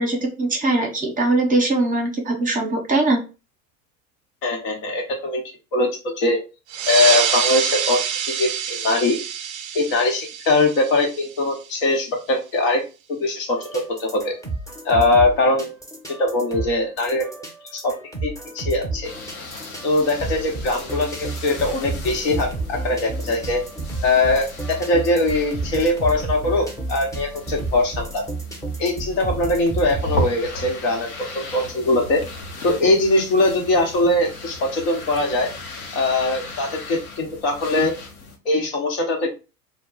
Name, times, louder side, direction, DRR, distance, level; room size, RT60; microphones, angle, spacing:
voice 1, 0.0-3.2, right 2 dB, 20° right, 1 dB, 0.9 m, -21 dB
voice 2, 4.4-5.4 5.7-6.4 6.9-8.0 8.3-9.2 9.7-12.8 13.1-14.3 14.8-15.7 16.2-17.3 17.7-17.9 18.2-19.1 19.8-23.6 24.0-28.2 28.8-32.2 32.6-35.5 35.9-37.9 38.4-39.3, left 2 dB, 60° left, 2 dB, 1.1 m, -21 dB
sound 1, 6.7-11.8, right 9 dB, 35° right, 0.4 m, -26 dB
sound 2, 13.6-30.0, right 3 dB, 10° left, 1.0 m, -31 dB
sound 3, 19.0-38.4, left 1 dB, 85° left, 0.8 m, -36 dB
2.3 x 2.2 x 3.8 m, 0.31 s
hypercardioid pair, 80°, 42 cm